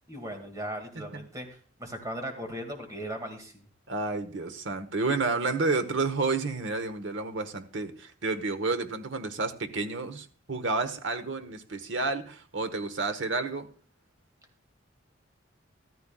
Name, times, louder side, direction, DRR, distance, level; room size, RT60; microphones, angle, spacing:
voice 1, 0.1-1.5 1.8-3.7, right 1 dB, 20° right, 4 dB, 2.0 m, -37 dB
voice 2, 3.9-13.7, right 3 dB, 75° right, 8 dB, 1.1 m, -30 dB
13.5 x 13.5 x 2.3 m, 0.41 s
head